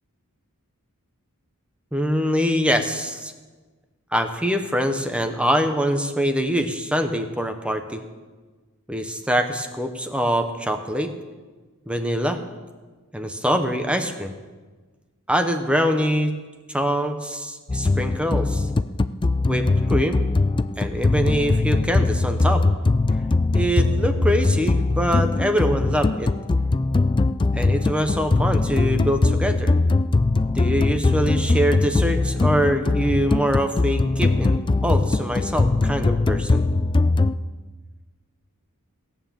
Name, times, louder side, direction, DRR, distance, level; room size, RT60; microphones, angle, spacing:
voice 1, 1.9-3.3 4.1-8.0 8.9-11.1 11.9-12.4 13.1-14.4 15.3-16.3 16.7-18.7 19.4-20.3 20.8-22.6 23.5-26.3 27.5-29.7 30.5-36.7, equal, 5° right, 7 dB, 0.8 m, -24 dB
sound 1, 17.7-37.3, left 3 dB, 20° left, 0.3 m, -21 dB
17.0 x 9.1 x 7.4 m, 1.3 s
head